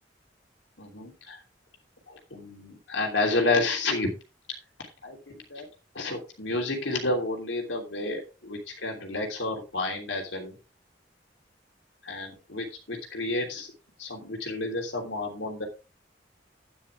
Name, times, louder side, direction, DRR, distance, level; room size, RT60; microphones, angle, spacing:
voice 1, 0.8-1.1 2.1-4.1 5.0-5.2 5.5-5.7 5.9-10.5 12.0-13.7 14.0-15.7, left 2 dB, 85° left, 1 dB, 3.1 m, -30 dB
10.5 x 10.0 x 3.4 m, 0.30 s
head